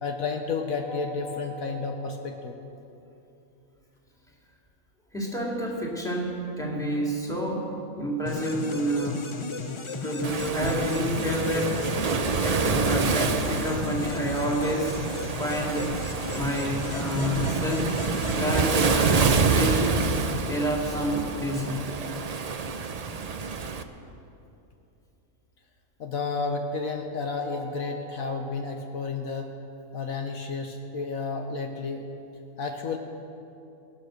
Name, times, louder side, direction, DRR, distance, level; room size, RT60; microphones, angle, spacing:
voice 1, 0.0-2.6 26.0-29.5 29.9-32.0 32.6-33.0, left 4 dB, 70° left, 3 dB, 1.4 m, -31 dB
voice 2, 5.1-7.7 8.0-9.3 10.0-11.8 12.4-15.0 15.4-16.0 16.3-17.9 18.3-20.2 20.4-21.8, equal, ahead, -3 dB, 2.5 m, -29 dB
sound 1, 8.3-20.3, left 3 dB, 35° left, 0.5 m, -35 dB
Waves surf, 10.2-23.8, right 5 dB, 50° right, 0.5 m, -27 dB
17.5 x 12.0 x 6.5 m, 2.8 s
omnidirectional pair, 1.5 m